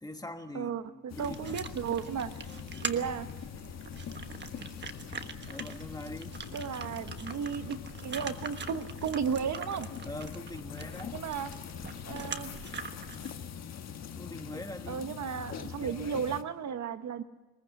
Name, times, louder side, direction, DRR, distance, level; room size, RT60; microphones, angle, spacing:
voice 1, 0.0-1.7 2.5-2.9 5.5-6.4 10.0-11.2 14.1-16.2, left 1 dB, 10° left, 6 dB, 1.2 m, -44 dB
voice 2, 0.5-3.3 6.5-9.9 11.1-11.5 12.1-12.5 14.9-17.2, right 7 dB, 50° right, 10 dB, 1.1 m, -34 dB
sound 1, 1.1-16.4, left 7 dB, 45° left, 1.4 m, -43 dB
sound 2, 1.1-13.4, right 5 dB, 30° right, 1.3 m, -44 dB
sound 3, 2.7-11.8, left 6 dB, 90° left, 4.2 m, -61 dB
22.5 x 21.0 x 7.0 m, 1.2 s
cardioid pair, 150°, 35 cm